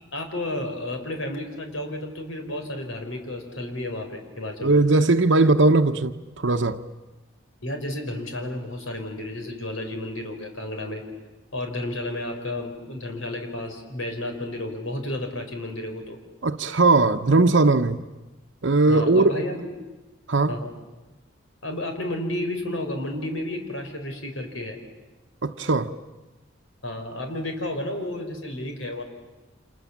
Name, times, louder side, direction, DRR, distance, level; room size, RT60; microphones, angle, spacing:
voice 1, 0.1-4.8 7.6-11.0 11.5-16.2 18.9-19.7 20.5-20.7 21.6-24.8 26.8-29.0, left 1 dB, 80° left, 4.6 m, -32 dB
voice 2, 4.6-6.9 16.4-18.0 18.6-19.4 20.3-20.6 25.4-25.9, right 3 dB, 65° right, 0.9 m, -19 dB
29.5 x 27.0 x 7.3 m
head